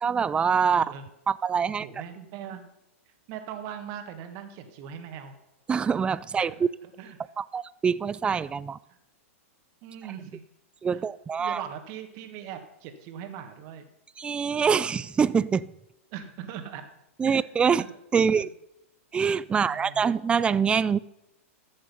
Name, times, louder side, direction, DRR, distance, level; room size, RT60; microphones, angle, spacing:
voice 1, 0.0-0.9 1.3-1.9 5.7-6.7 7.4-8.8 10.8-11.6 14.2-15.7 17.2-17.8 18.1-18.5 19.1-21.0, right 6 dB, 15° right, 0.3 m, -24 dB
voice 2, 0.7-1.0 1.8-2.7 3.3-5.3 6.4-6.6 7.0-7.2 9.8-10.4 10.9-11.0 11.4-13.8 16.1-16.8 17.2-17.7 18.2-18.5 19.5-20.0, right 9 dB, 45° right, 1.7 m, -40 dB
14.0 x 6.5 x 5.4 m
hypercardioid pair, 125°, 7 cm